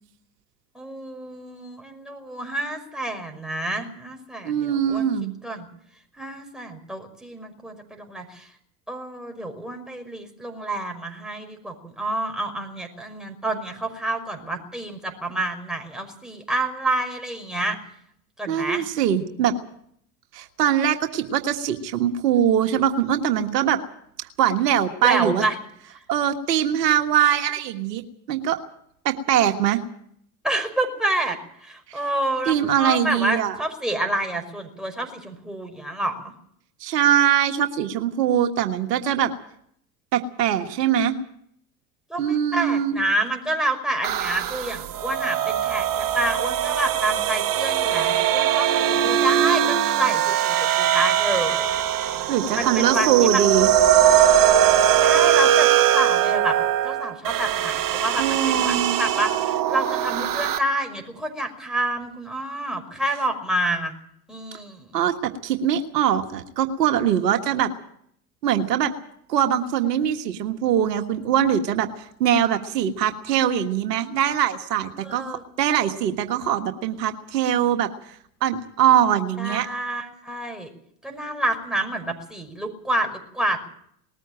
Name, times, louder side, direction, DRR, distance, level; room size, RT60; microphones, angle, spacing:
voice 1, 0.7-5.1 5.4-5.7 6.2-8.5 8.9-17.8 18.4-18.8 25.0-25.6 25.9-26.0 30.4-36.3 42.1-51.8 52.5-53.4 55.0-56.6 56.8-63.9 64.3-65.0 75.0-75.4 79.4-80.7 81.0-83.6, right 1 dB, ahead, 3 dB, 5.6 m, -28 dB
voice 2, 4.4-5.3 18.5-19.6 20.3-23.8 24.2-25.4 26.1-28.0 28.3-28.6 29.0-29.8 32.5-33.6 36.8-39.3 40.1-41.1 42.2-43.0 52.3-53.7 58.2-59.0 64.9-67.7 68.4-68.9 69.3-79.7, right 9 dB, 75° right, 6 dB, 1.6 m, -22 dB
sound 1, 44.0-60.6, right 10 dB, 40° right, 1.7 m, -21 dB
20.0 x 14.5 x 9.0 m, 0.68 s
hypercardioid pair, 80°, 48 cm